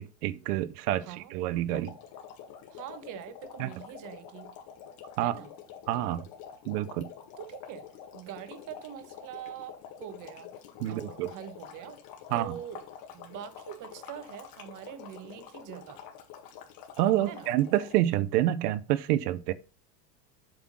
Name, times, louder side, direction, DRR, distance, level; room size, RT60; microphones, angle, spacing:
voice 1, 0.0-1.9 3.6-3.7 5.2-5.4 5.9-6.2 6.7-7.1 10.8-11.3 12.3-12.6 17.0-19.5, right 13 dB, 75° right, 0.8 m, -28 dB
voice 2, 1.0-1.3 2.7-4.5 5.2-5.5 7.4-10.5 10.9-12.0 12.3-12.8 13.1-16.0 17.3-17.5, right 11 dB, 40° right, 1.1 m, -44 dB
sound 1, 1.7-18.1, left 8 dB, 50° left, 1.8 m, -47 dB
7.8 x 3.6 x 6.1 m
supercardioid pair, 120°, 47 cm